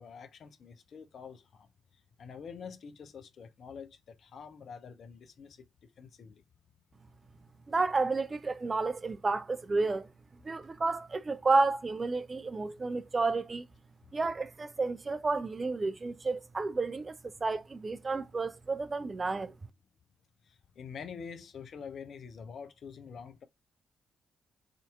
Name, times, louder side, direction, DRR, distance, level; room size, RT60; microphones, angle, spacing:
voice 1, 0.0-1.7 2.2-5.6 6.0-6.4 20.5-23.4, left 6 dB, 55° left, 0.7 m, -46 dB
voice 2, 7.7-10.1 10.4-13.6 14.1-19.5, right 3 dB, 35° right, 0.5 m, -31 dB
5.0 x 2.7 x 2.4 m
hypercardioid pair, 40°, 0 cm